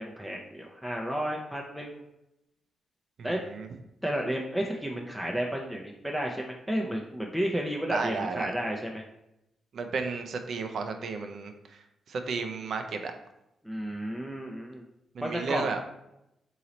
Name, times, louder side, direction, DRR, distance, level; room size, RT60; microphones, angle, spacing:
voice 1, 0.0-2.0 3.2-3.4 4.0-9.0 13.6-14.8 15.2-15.7, equal, 5° right, -1 dB, 0.6 m, -32 dB
voice 2, 3.2-3.7 7.9-8.5 9.7-13.1 15.1-15.8, right 4 dB, 65° right, 6 dB, 0.5 m, -33 dB
3.8 x 2.9 x 4.0 m, 0.86 s
hypercardioid pair, 40°, 0 cm